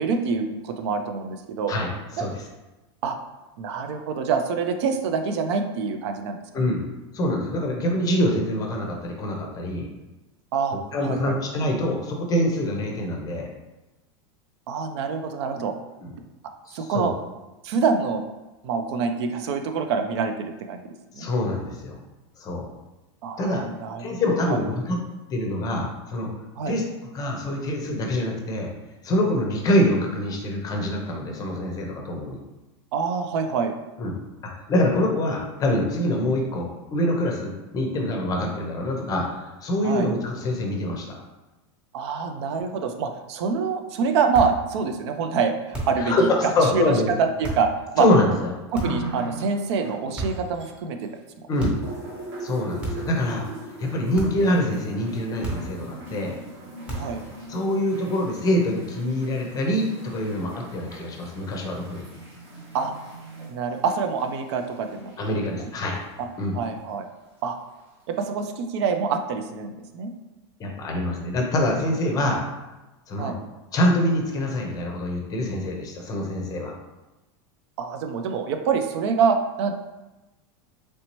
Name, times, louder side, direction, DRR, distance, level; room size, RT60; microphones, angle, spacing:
voice 1, 0.0-1.7 2.2-2.3 3.0-3.2 3.6-6.4 6.7-6.8 10.5-11.4 14.7-15.7 16.7-17.1 17.6-18.2 18.6-21.3 23.2-24.2 26.6-26.7 32.9-33.7 39.8-40.1 41.9-46.3 46.7-48.1 48.7-51.1 51.5-51.7 57.0-57.2 62.7-62.9 63.5-65.1 65.6-65.7 66.2-66.3 66.5-67.1 67.4-67.6 68.1-70.1 73.2-73.4 77.8-79.7, right 5 dB, 70° right, 6 dB, 0.4 m, -26 dB
voice 2, 7.1-9.9 10.9-13.5 16.0-16.1 16.7-17.1 21.1-22.0 22.4-22.7 23.4-23.6 24.0-25.0 25.3-26.3 26.7-28.7 29.0-32.4 34.0-34.1 34.7-41.2 46.0-47.1 48.0-48.5 51.5-51.8 52.4-53.5 53.8-56.3 57.5-62.0 65.2-66.0 66.4-66.5 70.6-72.4 73.1-73.4 73.7-76.7, left 1 dB, 25° left, 1 dB, 0.6 m, -25 dB
sound 1, 44.3-44.6 45.7-46.1 47.4-47.7 48.7-49.1 50.1-50.6 51.6-51.9 52.8-53.2 54.1-54.5 55.4-55.8 56.9-57.2, right 2 dB, 5° right, 0.9 m, -32 dB
sound 2, 48.8-51.2 51.5-66.2 67.1-67.2, right 2 dB, 40° right, 1.0 m, -40 dB
3.2 x 2.8 x 2.9 m, 1.1 s
supercardioid pair, 140°, 15 cm